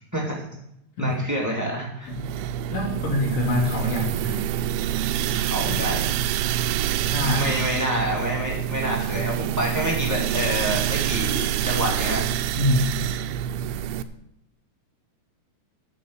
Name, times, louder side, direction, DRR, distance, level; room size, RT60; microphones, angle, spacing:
voice 1, 1.0-2.1 5.3-6.0 7.3-12.2, equal, 15° right, -2 dB, 0.6 m, -27 dB
sound 1, 2.1-14.0, right 11 dB, 85° right, 3.1 m, -26 dB
voice 2, 2.7-4.4 5.7-5.8 7.1-7.7 12.5-13.0, left 1 dB, 80° left, -2 dB, 5.7 m, -25 dB
12.5 x 6.5 x 6.3 m, 0.81 s
omnidirectional pair, 5.3 m